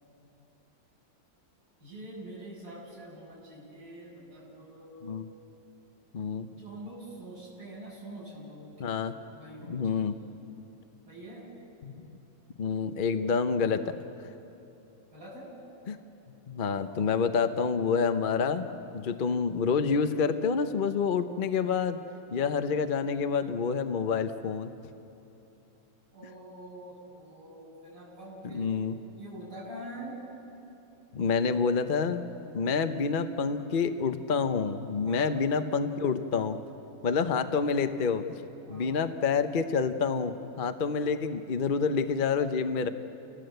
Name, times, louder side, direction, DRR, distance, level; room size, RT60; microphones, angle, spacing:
voice 1, 1.8-5.1 6.5-9.0 9.3-10.1 11.1-11.5 15.1-15.5 22.4-22.8 26.1-30.2 35.0-35.3 38.7-39.0, right 1 dB, 45° right, -6 dB, 8.0 m, -45 dB
voice 2, 6.1-6.5 8.8-9.1 9.7-10.2 11.8-12.1 12.6-14.0 15.9-16.0 16.5-18.7 18.9-22.0 22.3-24.7 28.4-29.0 31.1-32.2 32.5-36.6 37.0-38.2 38.7-42.9, left 5 dB, 55° left, 9 dB, 0.5 m, -28 dB
28.5 x 18.0 x 7.9 m, 2.9 s
omnidirectional pair, 2.1 m